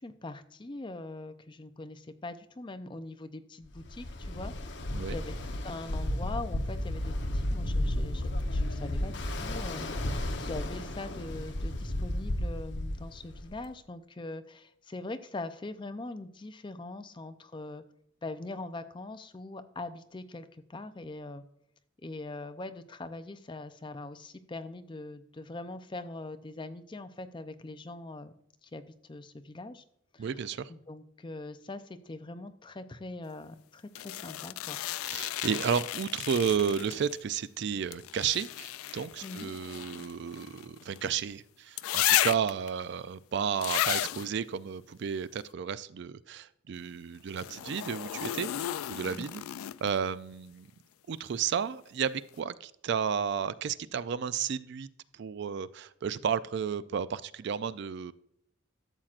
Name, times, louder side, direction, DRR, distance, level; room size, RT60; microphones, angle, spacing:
voice 1, 0.0-4.8 5.1-17.8 18.2-21.4 22.0-28.3 28.6-29.8 30.1-34.8 39.2-39.5 49.2-49.3, left 2 dB, 25° left, 10 dB, 0.5 m, -42 dB
Ocean, 3.8-13.7, left 1 dB, 55° left, 0.9 m, -33 dB
voice 2, 30.2-30.7 35.0-49.4 49.8-50.7 51.1-54.9 55.1-58.1, right 7 dB, 55° right, 15 dB, 0.3 m, -32 dB
sound 1, 34.0-37.2 37.9-41.1 41.8-42.7 43.6-44.3 47.3-50.0 51.9-52.0, left 13 dB, 85° left, 0.3 m, -33 dB
13.0 x 7.4 x 2.5 m, 0.73 s
head